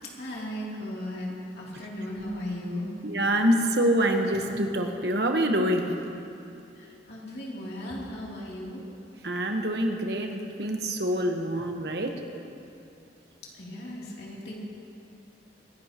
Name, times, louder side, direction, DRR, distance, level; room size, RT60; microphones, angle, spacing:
voice 1, 0.0-2.9 6.8-8.8 13.5-14.5, left 1 dB, 60° left, -5 dB, 2.9 m, -36 dB
voice 2, 3.0-5.9 9.2-12.2, right 1 dB, 65° right, 3 dB, 1.2 m, -26 dB
25.5 x 11.0 x 3.0 m, 2.6 s
head